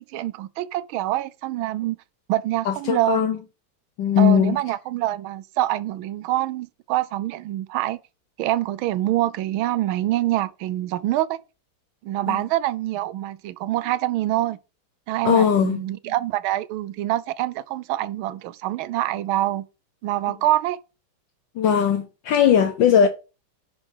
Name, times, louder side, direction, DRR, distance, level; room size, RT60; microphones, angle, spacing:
voice 1, 0.0-2.0 2.3-3.3 4.2-8.0 8.4-11.4 12.0-14.6 15.1-19.7 20.0-20.8, right 15 dB, 85° right, 1.4 m, -25 dB
voice 2, 2.6-3.4 4.0-4.6 12.3-12.4 15.2-15.8 21.6-23.1, left 8 dB, 70° left, 1.4 m, -19 dB
10.5 x 4.4 x 4.9 m
omnidirectional pair, 2.2 m